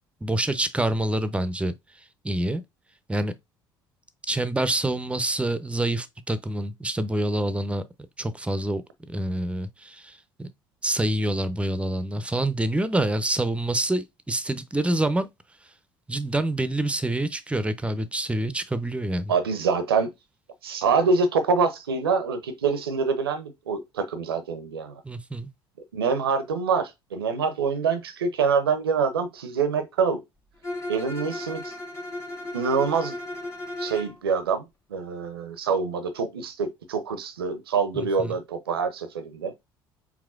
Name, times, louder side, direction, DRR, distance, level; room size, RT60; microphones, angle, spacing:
voice 1, 0.2-1.7 2.2-2.6 3.1-3.3 4.3-7.8 8.2-8.8 9.1-10.5 10.8-15.3 16.1-19.3 25.0-25.5 37.9-38.3, right 1 dB, 10° right, 0.6 m, -26 dB
voice 2, 19.3-20.1 20.6-25.0 25.9-30.2 30.9-31.7 32.5-33.2 33.8-34.6 34.9-39.5, right 5 dB, 80° right, 0.6 m, -25 dB
Bowed string instrument, 30.6-34.2, left 1 dB, 20° left, 1.4 m, -35 dB
4.8 x 3.5 x 2.4 m
figure-of-eight pair, 60°, 12 cm